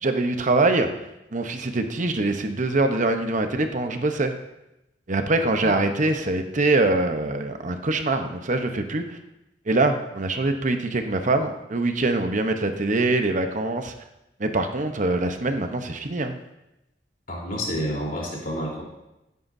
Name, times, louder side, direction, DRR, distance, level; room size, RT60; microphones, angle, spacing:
voice 1, 0.0-0.9 1.3-4.3 5.1-9.2 9.7-13.9 14.4-16.4, right 2 dB, 45° right, 6 dB, 0.9 m, -23 dB
voice 2, 17.3-18.8, equal, 55° left, -3 dB, 3.6 m, -29 dB
16.0 x 9.4 x 2.7 m, 0.92 s
head